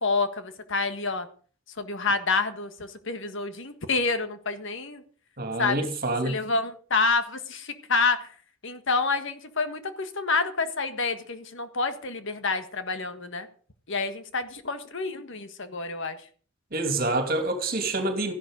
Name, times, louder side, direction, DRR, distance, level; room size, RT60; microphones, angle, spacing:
voice 1, 0.0-1.3 1.8-5.0 5.6-5.8 6.2-8.3 8.6-13.5 13.9-16.2, left 4 dB, 60° left, 1.5 m, -28 dB
voice 2, 5.4-6.3 16.7-18.3, right 2 dB, 45° right, 2.8 m, -27 dB
14.5 x 11.5 x 5.2 m
head